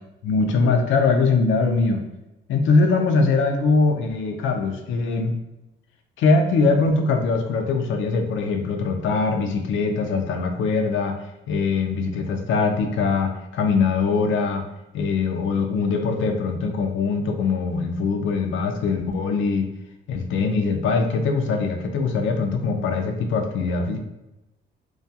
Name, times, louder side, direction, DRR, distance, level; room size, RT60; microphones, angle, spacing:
voice 1, 0.2-2.0 2.5-5.3 6.2-11.2 11.5-14.6 14.9-19.7 20.1-24.0, left 4 dB, 75° left, 4 dB, 0.4 m, -22 dB
2.3 x 2.2 x 2.7 m, 0.94 s
cardioid pair, 90°, 20 cm